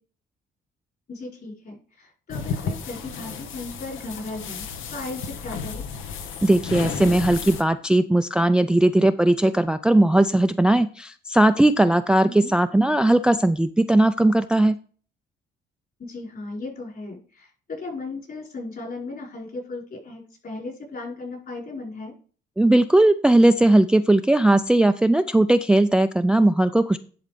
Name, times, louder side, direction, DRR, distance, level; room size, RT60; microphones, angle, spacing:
voice 1, 1.1-5.8 12.2-12.5 16.0-22.1, left 3 dB, 50° left, -1 dB, 4.7 m, -36 dB
sound 1, 2.3-7.6, left 6 dB, 85° left, 1.1 m, -33 dB
voice 2, 6.4-14.8 22.6-27.0, right 1 dB, 5° right, 11 dB, 0.3 m, -18 dB
10.5 x 4.0 x 5.1 m, 0.41 s
cardioid pair, 90°, 20 cm